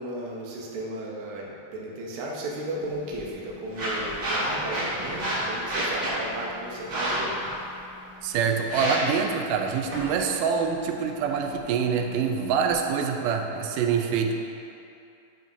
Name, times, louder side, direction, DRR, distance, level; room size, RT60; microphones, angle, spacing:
voice 1, 0.0-7.4, right 1 dB, 70° right, -3 dB, 1.3 m, -34 dB
sound 1, 2.8-12.8, right 1 dB, 40° right, 1.6 m, -32 dB
voice 2, 8.2-14.3, right 6 dB, 90° right, 3 dB, 2.1 m, -25 dB
8.8 x 5.0 x 2.7 m, 2.6 s
omnidirectional pair, 3.6 m